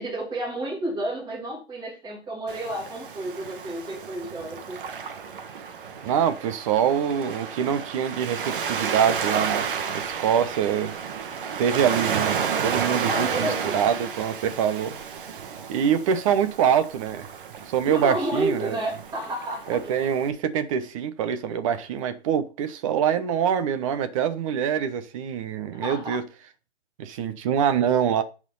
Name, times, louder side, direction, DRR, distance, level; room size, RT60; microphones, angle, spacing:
voice 1, 0.0-4.9 13.0-13.9 17.9-19.8 25.7-26.2, right 1 dB, 10° right, 2.9 m, -31 dB
Waves surf, 2.5-20.3, right 6 dB, 50° right, 1.7 m, -32 dB
voice 2, 6.0-10.9 11.6-15.0 15.7-17.3 17.6-18.8 19.7-26.2 27.0-28.2, right 8 dB, 30° right, 1.1 m, -25 dB
10.5 x 5.1 x 5.5 m
hypercardioid pair, 155°, 33 cm